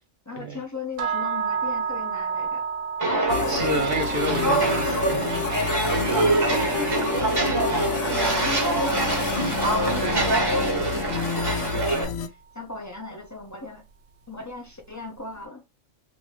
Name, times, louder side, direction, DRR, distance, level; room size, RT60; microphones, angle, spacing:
voice 1, 0.3-2.6 6.2-13.8 14.3-15.6, left 3 dB, 30° left, 0.3 m, -38 dB
sound 1, 1.0-11.1, right 6 dB, 80° right, 1.0 m, -33 dB
Walk footsteps, 3.0-12.0, right 2 dB, 20° right, 1.1 m, -24 dB
sound 2, 3.3-12.3, left 8 dB, 65° left, 0.8 m, -30 dB
voice 2, 3.5-5.6, right 1 dB, 40° right, 1.2 m, -29 dB
2.9 x 2.7 x 3.1 m
omnidirectional pair, 1.4 m